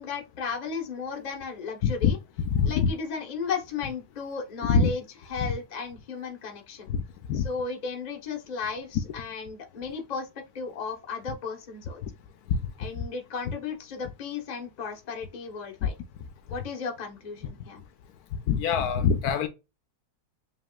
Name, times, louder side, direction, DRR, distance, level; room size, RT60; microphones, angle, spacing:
voice 1, 0.0-2.2 2.6-5.0 5.3-6.9 7.4-10.3 10.5-12.0 12.8-15.9 16.5-17.8, left 5 dB, 35° left, 0.8 m, -35 dB
voice 2, 2.5-2.9 4.7-4.9 5.4-5.5 6.9-7.0 7.3-7.4 12.5-12.6 18.5-19.5, left 6 dB, 75° left, 1.1 m, -23 dB
5.4 x 3.0 x 2.2 m
omnidirectional pair, 1.7 m